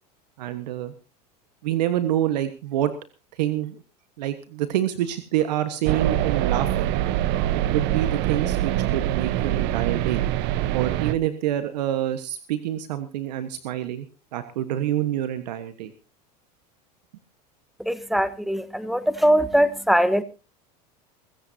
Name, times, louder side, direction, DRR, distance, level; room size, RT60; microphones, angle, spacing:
voice 1, 0.4-0.9 1.6-2.9 3.3-3.8 4.2-6.9 7.7-10.2 10.7-14.1 14.3-15.9, right 12 dB, 80° right, 10 dB, 1.4 m, -27 dB
sound 1, 5.8-11.1, right 13 dB, 55° right, 1.1 m, -24 dB
voice 2, 17.8-20.2, equal, ahead, 13 dB, 1.4 m, -21 dB
23.5 x 14.5 x 2.8 m, 0.32 s
hypercardioid pair, 100°, 21 cm